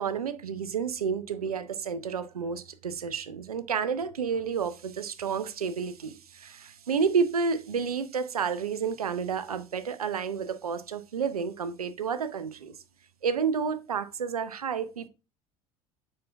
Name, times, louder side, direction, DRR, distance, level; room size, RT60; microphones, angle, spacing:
voice 1, 0.0-12.7 13.2-15.1, right 6 dB, 85° right, 0.5 m, -30 dB
7.6 x 5.7 x 2.2 m
figure-of-eight pair, 65°, 18 cm